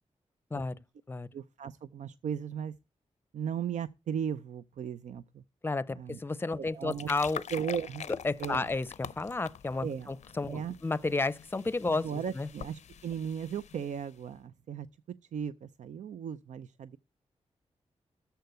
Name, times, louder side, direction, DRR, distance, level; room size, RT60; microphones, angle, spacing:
voice 1, 1.3-2.7 3.3-5.4 6.0-6.2 6.6-7.1 7.5-8.1 8.4-8.7 9.8-10.1 10.5-10.7 11.9-17.0, right 8 dB, 85° right, 0.5 m, -37 dB
voice 2, 5.6-7.4 8.2-12.1 12.3-12.5, left 3 dB, 20° left, 0.5 m, -32 dB
sound 1, 6.6-14.2, left 8 dB, 75° left, 0.5 m, -45 dB
13.5 x 4.6 x 7.9 m
wide cardioid pair, 130°, 12 cm